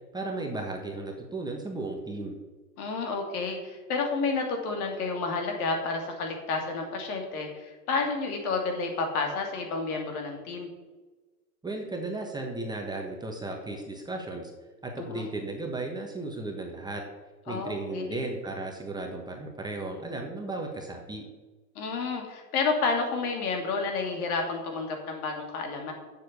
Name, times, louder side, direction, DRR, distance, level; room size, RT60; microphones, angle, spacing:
voice 1, 0.1-2.4 11.6-14.5 14.8-17.0 17.5-21.2, right 2 dB, 10° right, 1 dB, 1.3 m, -35 dB
voice 2, 2.8-10.7 15.0-15.3 17.5-18.2 21.7-25.9, left 4 dB, 60° left, 2 dB, 3.1 m, -30 dB
7.5 x 7.1 x 8.3 m, 1.3 s
hypercardioid pair, 125°, 49 cm